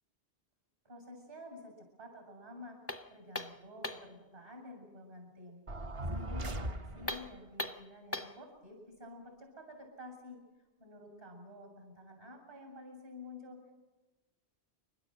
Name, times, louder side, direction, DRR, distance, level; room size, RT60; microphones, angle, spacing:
voice 1, 0.8-2.8 3.1-5.6 6.1-10.4 10.8-13.7, left 1 dB, 60° right, 3 dB, 7.4 m, -50 dB
sound 1, 2.9-4.2 7.0-8.4, left 1 dB, 15° left, 0.6 m, -40 dB
sound 2, 5.7-7.4, right 1 dB, 35° right, 0.8 m, -38 dB
30.0 x 12.5 x 7.8 m, 1.2 s
omnidirectional pair, 1.0 m